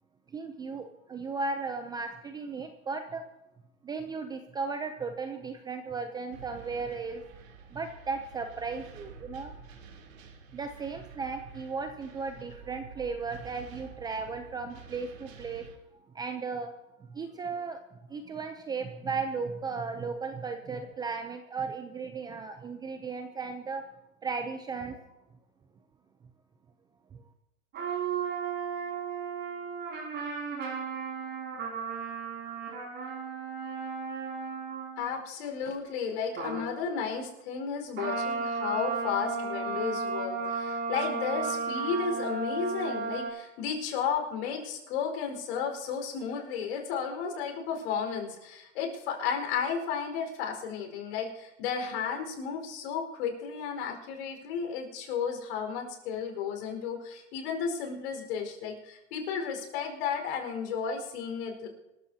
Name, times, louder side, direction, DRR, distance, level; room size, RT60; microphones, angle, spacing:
voice 1, 0.3-3.2 3.8-7.4 7.7-9.5 10.5-15.7 16.1-16.7 17.1-17.8 18.1-23.8 24.2-25.0 27.1-27.2, right 4 dB, 10° right, 7 dB, 0.5 m, -36 dB
sound 1, 6.3-15.8, right 5 dB, 75° right, 3.2 m, -50 dB
sound 2, 27.7-35.2 36.4-36.7 38.0-43.3, right 4 dB, 25° right, 5.7 m, -34 dB
voice 2, 35.0-61.7, left 6 dB, 55° left, 4 dB, 4.8 m, -33 dB
25.5 x 14.5 x 2.8 m, 0.98 s
hypercardioid pair, 135°, 40 cm